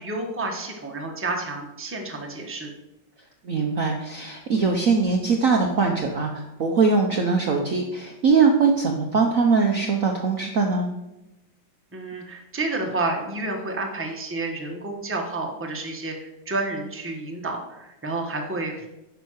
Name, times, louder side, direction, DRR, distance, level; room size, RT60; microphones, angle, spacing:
voice 1, 0.0-2.7 11.9-18.9, right 2 dB, 5° right, 1 dB, 1.1 m, -30 dB
voice 2, 3.4-10.9, right 4 dB, 50° right, 2 dB, 1.1 m, -21 dB
9.9 x 5.8 x 6.3 m, 0.95 s
omnidirectional pair, 2.3 m